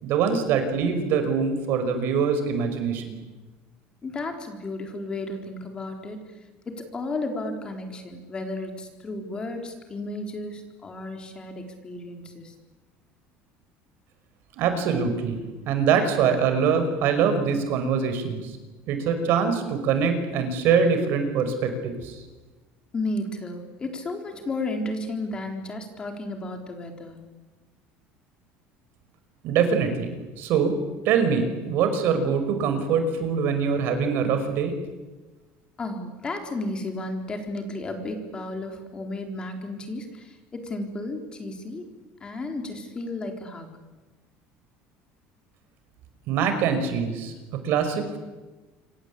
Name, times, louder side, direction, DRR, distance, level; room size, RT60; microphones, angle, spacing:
voice 1, 0.0-3.2 14.6-15.4 15.7-18.6 18.9-22.2 29.4-30.8 31.0-34.8 46.3-48.2, right 6 dB, 55° right, 8 dB, 5.4 m, -24 dB
voice 2, 4.0-6.2 6.7-12.5 22.9-27.3 35.8-41.8 42.2-43.8, left 2 dB, 20° left, 4 dB, 3.9 m, -33 dB
27.0 x 25.5 x 8.5 m, 1.2 s
cardioid pair, 150°, 4 cm